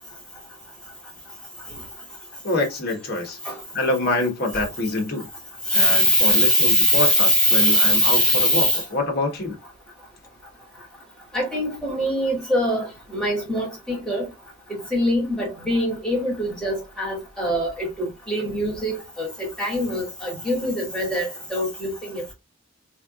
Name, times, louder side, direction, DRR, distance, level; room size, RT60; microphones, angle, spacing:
voice 1, 2.4-3.4 3.7-5.3 5.7-9.5, left 2 dB, 45° left, 1.2 m, -26 dB
voice 2, 5.7-8.8 11.3-12.9 13.1-14.3 14.7-22.3, equal, 5° left, 2.1 m, -22 dB
3.6 x 3.3 x 2.4 m
head